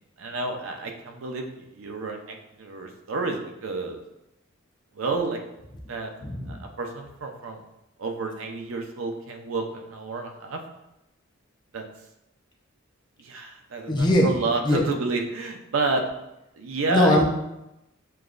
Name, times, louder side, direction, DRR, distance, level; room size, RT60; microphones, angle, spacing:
voice 1, 0.2-4.0 4.9-5.4 5.9-6.1 6.5-7.6 8.0-10.6 11.7-11.8 13.2-16.1 16.6-17.2, right 3 dB, 75° right, 3 dB, 0.6 m, -30 dB
voice 2, 6.2-6.5 13.9-14.3 14.7-14.8 16.9-17.2, left 1 dB, 20° left, 0 dB, 0.5 m, -20 dB
6.7 x 2.3 x 2.5 m, 0.90 s
head